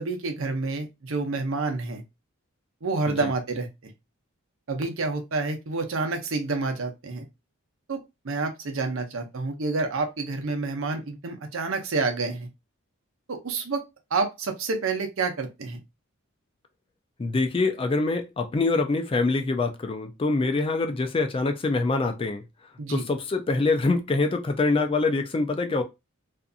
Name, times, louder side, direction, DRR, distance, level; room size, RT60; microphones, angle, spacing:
voice 1, 0.0-2.0 2.8-3.9 4.7-7.3 7.9-12.5 13.3-13.8 14.1-15.8 22.8-23.0, right 3 dB, 65° right, 0.6 m, -28 dB
voice 2, 17.2-22.4 22.9-25.8, left 3 dB, 25° left, 0.3 m, -25 dB
2.5 x 2.5 x 2.3 m
head